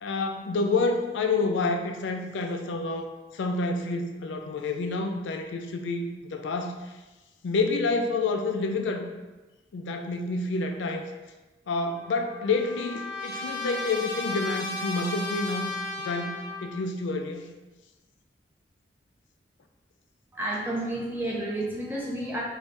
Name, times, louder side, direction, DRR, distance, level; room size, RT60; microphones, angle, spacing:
voice 1, 0.0-3.1 3.3-6.8 7.4-9.0 9.7-11.1 11.7-15.7 16.0-17.4, left 3 dB, 90° left, 5 dB, 0.4 m, -28 dB
Trumpet, 11.9-16.8, left 2 dB, 25° left, 0.8 m, -35 dB
voice 2, 20.3-22.4, right 1 dB, 10° right, -4 dB, 0.5 m, -31 dB
3.2 x 2.6 x 3.2 m, 1.1 s
head